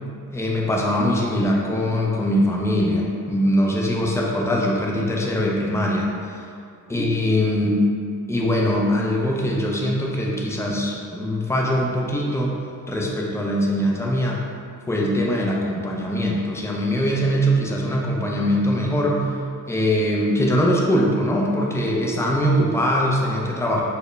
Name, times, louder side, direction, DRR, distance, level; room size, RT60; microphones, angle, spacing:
voice 1, 0.3-6.4 6.9-7.8 8.3-12.6 12.9-14.4 14.9-19.4 19.7-23.8, equal, 10° left, -2 dB, 0.3 m, -22 dB
4.2 x 2.0 x 3.3 m, 2.3 s
wide cardioid pair, 150°, 33 cm